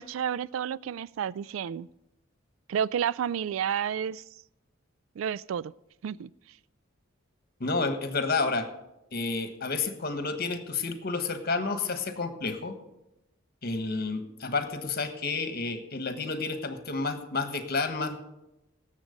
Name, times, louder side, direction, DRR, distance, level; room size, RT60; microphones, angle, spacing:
voice 1, 0.0-1.9 2.7-4.2 5.2-5.7 6.0-6.3, right 8 dB, 80° right, 21 dB, 0.3 m, -30 dB
voice 2, 7.6-8.7 9.1-12.7 13.6-18.2, left 3 dB, 50° left, 8 dB, 1.4 m, -30 dB
17.5 x 7.4 x 5.2 m, 0.89 s
head